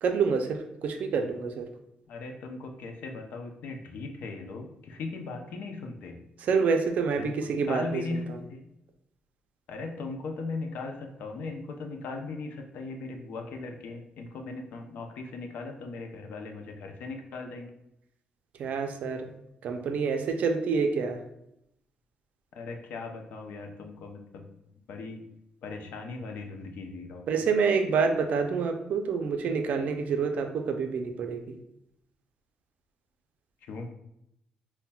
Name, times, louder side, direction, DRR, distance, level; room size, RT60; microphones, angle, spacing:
voice 1, 0.0-1.7 6.4-8.2 18.6-19.3 19.6-21.2 27.3-31.4, right 5 dB, 60° right, 5 dB, 0.4 m, -27 dB
voice 2, 2.1-6.2 7.2-7.3 7.6-8.6 9.7-17.7 22.6-24.5 24.9-25.2 25.6-27.4 33.7-33.9, left 3 dB, 75° left, 3 dB, 0.5 m, -38 dB
5.5 x 2.1 x 2.2 m, 0.81 s
cardioid pair, 135°, 3 cm